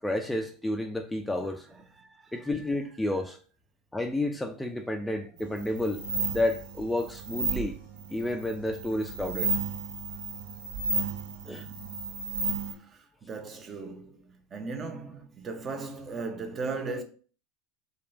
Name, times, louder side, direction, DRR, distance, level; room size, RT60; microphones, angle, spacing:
voice 1, 0.0-1.7 2.3-3.4 3.9-6.1 6.3-7.8 8.1-9.5 11.5-11.7, left 1 dB, 5° left, 0.4 m, -30 dB
voice 2, 2.0-2.5 11.7-11.8 12.7-17.0, right 4 dB, 30° right, 0.7 m, -38 dB
sound 1, 5.4-12.7, right 4 dB, 65° right, 0.9 m, -33 dB
3.7 x 2.3 x 4.0 m
hypercardioid pair, 85°, 0 cm